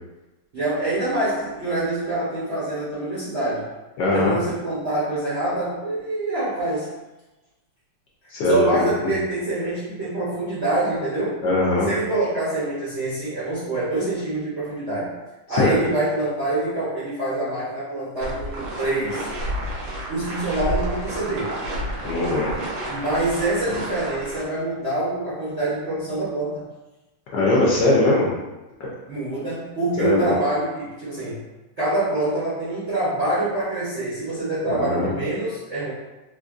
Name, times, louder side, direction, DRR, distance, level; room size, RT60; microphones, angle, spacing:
voice 1, 0.5-3.7 4.1-6.9 8.5-11.4 11.8-15.1 15.5-19.3 20.1-21.5 22.9-26.6 29.1-31.4 31.8-35.9, right 2 dB, 55° right, -11 dB, 0.8 m, -25 dB
voice 2, 4.0-4.4 8.3-9.2 11.4-11.9 15.5-15.7 22.0-22.5 27.3-28.3 28.8-28.9 30.0-30.3 34.7-35.1, left 2 dB, 70° left, -5 dB, 1.2 m, -20 dB
sound 1, 18.2-24.4, right 1 dB, 70° right, 1.5 m, -30 dB
4.2 x 2.5 x 2.4 m, 1.1 s
omnidirectional pair, 2.4 m